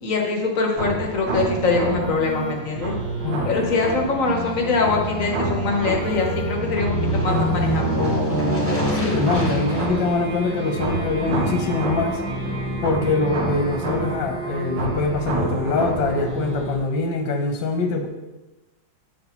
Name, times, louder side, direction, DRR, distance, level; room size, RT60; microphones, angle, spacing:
voice 1, 0.0-2.9 3.4-7.9, left 3 dB, 50° left, 1 dB, 1.1 m, -23 dB
sound 1, 0.8-16.8, right 2 dB, 65° right, 1.8 m, -28 dB
Aircraft, 1.2-13.7 14.1-14.2, equal, 10° left, 1.2 m, -28 dB
voice 2, 3.2-3.6 8.9-12.2 12.8-18.1, left 3 dB, 65° left, 3 dB, 1.4 m, -24 dB
8.3 x 4.3 x 4.1 m, 1.1 s
omnidirectional pair, 2.2 m